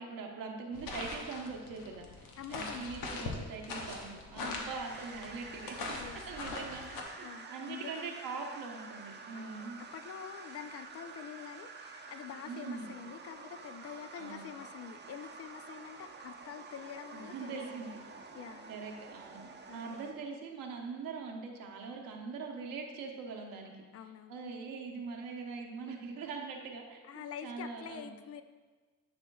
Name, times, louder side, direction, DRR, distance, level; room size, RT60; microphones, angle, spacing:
voice 1, 0.0-5.8 6.3-9.8 12.5-12.9 14.2-14.4 17.1-18.0 18.7-23.7 24.3-28.1, right 4 dB, 75° right, 1 dB, 0.9 m, -42 dB
sound 1, 0.7-7.0, left 3 dB, 85° left, 1.0 m, -42 dB
voice 2, 2.4-2.8 4.4-4.7 6.0-6.2 7.2-8.2 9.3-17.8 18.3-18.7 19.7-20.0 23.9-24.5 27.0-28.4, left 8 dB, 45° left, 10 dB, 0.5 m, -46 dB
sound 2, 4.7-20.1, right 4 dB, 30° right, 0.7 m, -49 dB
10.0 x 4.3 x 2.3 m, 1.4 s
cardioid pair, 85°, 34 cm